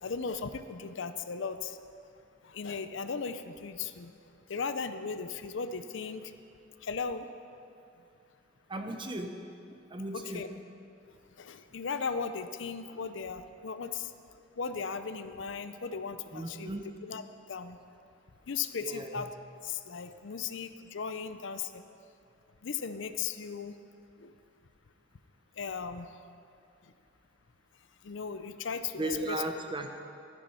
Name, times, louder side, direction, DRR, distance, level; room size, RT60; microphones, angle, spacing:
voice 1, 0.0-1.8 2.4-4.1 4.5-6.3 6.8-7.3 10.1-10.5 11.4-14.1 14.6-16.7 17.0-17.2 17.5-17.8 18.5-19.3 19.6-21.8 22.6-23.8 24.2-24.3 25.6-26.1 28.0-29.4, left 5 dB, 60° left, 10 dB, 0.6 m, -37 dB
voice 2, 8.7-9.3 9.7-10.4 16.3-16.9 18.8-19.3 29.0-29.9, right 2 dB, 25° right, 5 dB, 0.8 m, -36 dB
13.5 x 10.0 x 5.7 m, 2.6 s
head